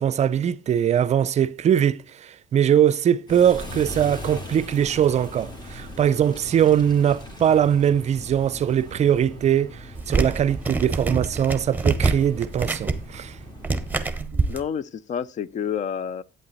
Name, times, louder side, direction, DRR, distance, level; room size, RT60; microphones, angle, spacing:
voice 1, 0.0-13.4 14.2-14.4, right 9 dB, 40° right, 0.4 m, -21 dB
sound 1, 3.3-14.3, left 1 dB, 25° left, 2.0 m, -40 dB
sound 2, 9.9-14.6, right 4 dB, 10° right, 1.0 m, -26 dB
voice 2, 14.3-16.2, left 8 dB, 45° left, 0.5 m, -29 dB
8.7 x 8.6 x 4.0 m
cardioid pair, 110°, 17 cm